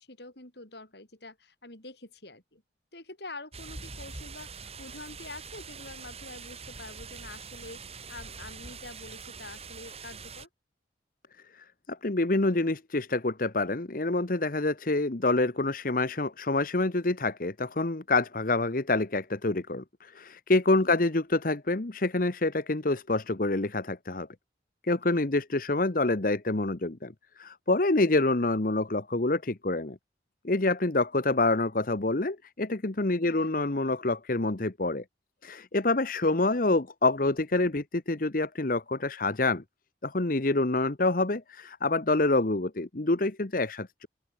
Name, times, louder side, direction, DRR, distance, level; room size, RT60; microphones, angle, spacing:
voice 1, 0.0-2.6 2.9-10.5 20.8-21.1 25.1-25.3 33.2-33.5, left 2 dB, 65° left, 5.7 m, -46 dB
sound 1, 3.5-10.5, right 5 dB, 35° right, 5.8 m, -44 dB
voice 2, 11.5-24.3 24.8-30.0 30.4-35.0 35.4-39.6 40.0-44.1, left 2 dB, 50° left, 1.1 m, -27 dB
open air
head